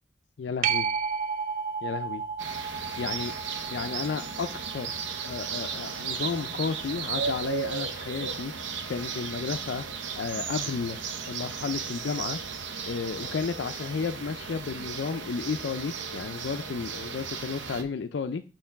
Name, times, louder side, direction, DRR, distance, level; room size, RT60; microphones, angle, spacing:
voice 1, 0.4-0.9 1.8-2.2 3.0-3.3 3.7-5.0 5.2-9.8 10.2-11.0 11.3-12.4 12.9-18.4, left 5 dB, 65° left, 0.4 m, -32 dB
sound 1, 0.6-7.8 13.3-13.4, right 6 dB, 45° right, 0.5 m, -34 dB
sound 2, 2.4-17.8, right 6 dB, 75° right, 0.8 m, -35 dB
6.5 x 3.1 x 5.7 m
head